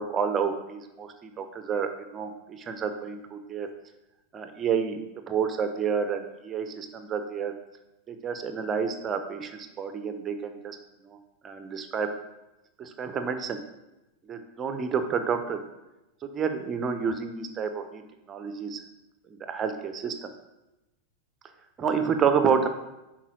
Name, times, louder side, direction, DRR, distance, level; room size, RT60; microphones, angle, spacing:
voice 1, 0.0-2.3 2.7-3.7 4.3-5.0 5.3-7.5 8.1-10.8 11.4-12.1 12.8-13.6 14.3-15.6 16.3-18.0 18.3-18.8 19.5-20.3 21.8-22.8, right 6 dB, 25° right, 8 dB, 0.9 m, -29 dB
10.0 x 4.5 x 6.2 m, 0.97 s
figure-of-eight pair, 90°, 0 cm